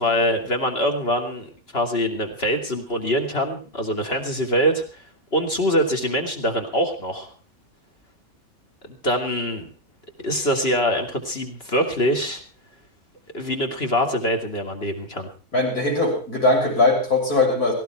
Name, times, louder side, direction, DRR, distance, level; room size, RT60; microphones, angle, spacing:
voice 1, 0.0-5.0 5.3-7.3 8.9-9.7 10.2-12.4 13.3-15.3, equal, 40° left, 4 dB, 3.0 m, -24 dB
voice 2, 15.5-17.7, left 2 dB, 75° left, -1 dB, 7.8 m, -20 dB
18.0 x 16.0 x 4.6 m, 0.36 s
omnidirectional pair, 1.6 m